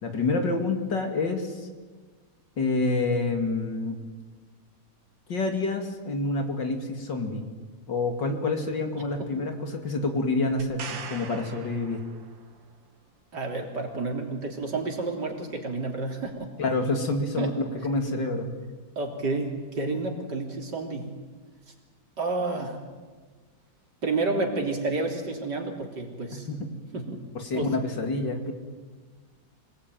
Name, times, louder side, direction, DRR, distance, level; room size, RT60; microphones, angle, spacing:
voice 1, 0.0-1.7 2.6-4.0 5.3-7.5 7.9-12.0 16.6-18.5 26.3-26.7 27.3-28.5, left 3 dB, 70° left, 5 dB, 3.2 m, -28 dB
voice 2, 9.0-9.3 13.3-16.5 17.4-17.5 19.0-21.1 22.2-22.8 24.0-26.5 26.9-27.2 27.5-27.7, right 3 dB, 60° right, 2 dB, 3.9 m, -30 dB
sound 1, 10.6-12.6 16.2-16.3, right 6 dB, 80° right, 2.3 m, -41 dB
26.0 x 19.5 x 9.3 m, 1.4 s
omnidirectional pair, 2.0 m